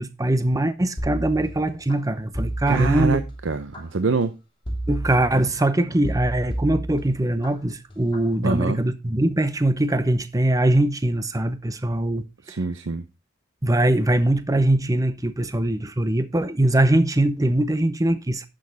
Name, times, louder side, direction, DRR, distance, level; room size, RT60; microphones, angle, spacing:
voice 1, 0.0-3.2 4.9-12.6 13.6-18.5, right 1 dB, 20° right, 0.8 m, -22 dB
sound 1, 1.0-1.9 2.3-3.8 4.7-5.6 6.0-7.5 7.9-8.3, right 1 dB, 25° left, 3.1 m, -31 dB
voice 2, 2.7-4.3 8.4-8.8 12.5-13.0, right 4 dB, 70° right, 0.7 m, -24 dB
11.0 x 6.4 x 4.0 m
head